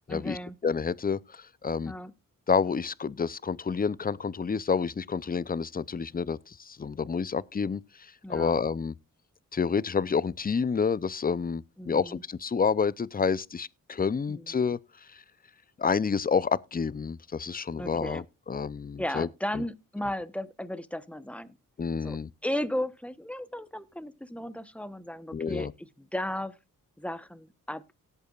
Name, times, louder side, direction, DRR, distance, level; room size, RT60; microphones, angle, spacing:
voice 1, 0.1-0.6 1.9-2.1 8.2-8.5 11.8-12.2 14.3-14.6 17.8-18.2 19.0-21.5 22.0-22.2 22.4-26.6 27.0-27.8, left 1 dB, 5° left, 0.9 m, -35 dB
voice 2, 0.6-1.9 2.5-7.8 8.3-8.9 9.5-14.8 15.1-15.2 15.8-19.3 21.8-22.3 25.3-25.7, left 5 dB, 25° left, 0.5 m, -29 dB
18.0 x 8.2 x 2.4 m
cardioid pair, 70°, 34 cm